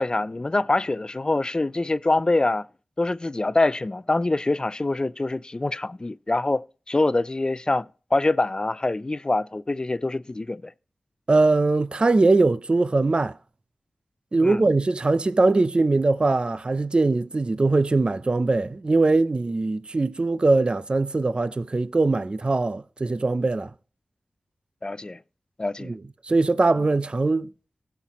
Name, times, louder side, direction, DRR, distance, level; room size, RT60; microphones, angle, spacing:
voice 1, 0.0-2.7 3.0-10.7 14.4-14.6 24.8-25.2 25.6-25.9, left 2 dB, 35° left, 0.4 m, -25 dB
voice 2, 11.3-13.4 14.3-23.7 25.8-26.0 26.2-27.5, right 3 dB, 40° right, 0.5 m, -21 dB
16.5 x 5.8 x 3.1 m
cardioid pair, 40°, 2 cm